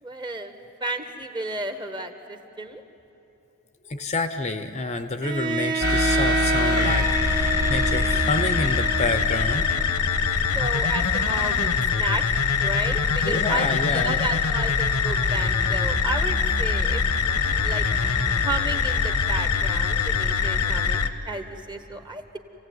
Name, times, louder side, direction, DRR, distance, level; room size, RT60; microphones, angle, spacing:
voice 1, 0.0-0.5 0.8-2.8 10.5-12.2 12.6-17.0 17.6-17.9 18.4-22.4, right 2 dB, 20° right, 7 dB, 1.2 m, -32 dB
voice 2, 3.9-9.7 13.2-14.2, left 3 dB, 30° left, 8 dB, 0.7 m, -28 dB
Bowed string instrument, 5.2-10.2, right 4 dB, 40° right, 1.1 m, -28 dB
sound 1, 5.8-21.1, left 5 dB, 85° left, 1.1 m, -23 dB
28.5 x 16.5 x 9.4 m, 3.0 s
head